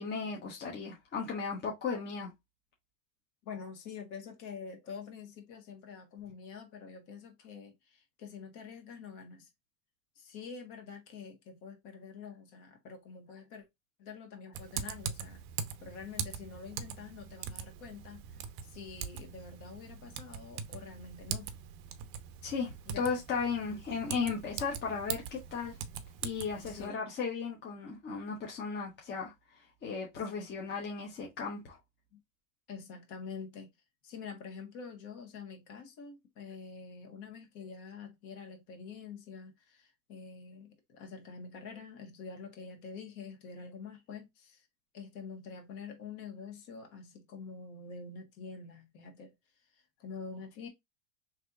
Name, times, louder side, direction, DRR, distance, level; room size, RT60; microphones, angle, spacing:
voice 1, 0.0-2.3 22.4-25.8 26.2-29.3 29.8-31.8, left 5 dB, 25° left, 1.1 m, -35 dB
voice 2, 3.4-9.5 10.2-13.6 14.0-15.4 15.8-18.2 18.6-21.5 22.9-23.1 23.7-23.8 26.6-27.0 32.1-32.2 32.7-33.7 34.0-44.6 44.9-49.3 50.0-50.7, left 5 dB, 50° left, 1.6 m, -46 dB
Typing, 14.5-26.9, right 8 dB, 45° right, 0.6 m, -42 dB
3.3 x 2.9 x 3.6 m
supercardioid pair, 140°, 40 cm